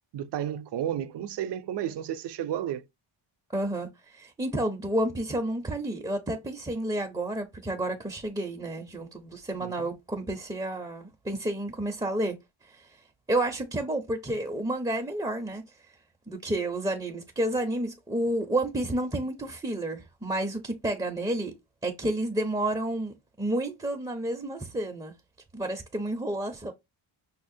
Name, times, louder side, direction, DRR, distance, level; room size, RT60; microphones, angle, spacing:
voice 1, 0.1-2.8 9.6-9.9, right 10 dB, 55° right, 0.5 m, -32 dB
voice 2, 3.5-12.4 12.7-12.8 13.3-15.6 16.3-21.5 21.8-25.1 25.5-26.7, right 1 dB, 10° right, 0.5 m, -30 dB
5.6 x 2.1 x 2.5 m
wide cardioid pair, 130°, 49 cm